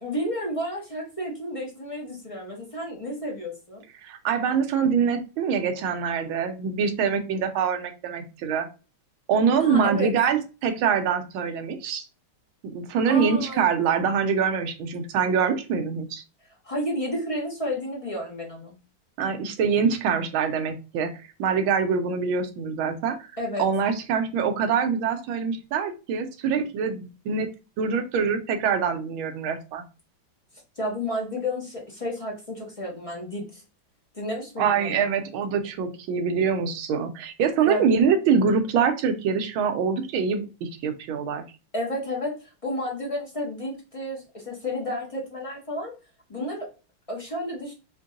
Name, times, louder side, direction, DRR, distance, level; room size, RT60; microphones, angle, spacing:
voice 1, 0.0-3.8 9.6-10.1 13.1-13.6 16.6-18.7 23.4-23.6 30.8-33.6 34.1-35.1 37.7-37.9 41.7-45.9 46.3-46.7 47.1-47.7, left 1 dB, 35° left, -2 dB, 0.5 m, -31 dB
voice 2, 4.0-8.7 9.3-12.0 12.7-16.2 19.2-23.2 23.6-27.5 27.8-29.8 34.6-41.4, right 6 dB, 80° right, 6 dB, 1.4 m, -24 dB
4.5 x 2.6 x 2.5 m, 0.30 s
omnidirectional pair, 2.3 m